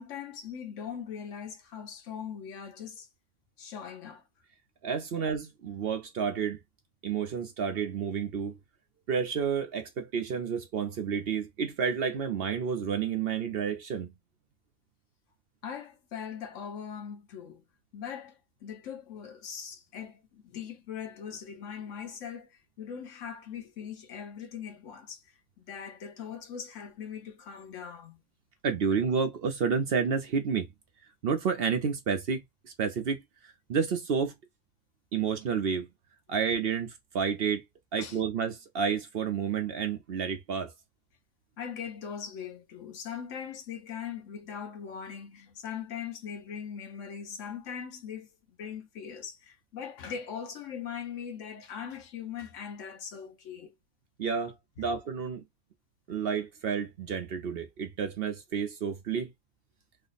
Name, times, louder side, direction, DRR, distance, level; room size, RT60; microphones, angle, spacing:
voice 1, 0.0-3.1 3.6-4.2 5.1-5.2 15.6-17.6 17.9-28.2 38.0-38.2 41.6-53.7 54.8-54.9, left 7 dB, 75° left, 1.1 m, -41 dB
voice 2, 4.8-6.6 7.0-8.6 9.1-14.1 28.6-30.7 31.2-32.4 32.8-33.2 33.7-34.3 35.1-35.9 36.3-37.6 37.9-40.7 54.2-55.4 56.1-59.3, right 6 dB, 60° right, 0.8 m, -30 dB
3.2 x 2.0 x 3.9 m
omnidirectional pair, 1.3 m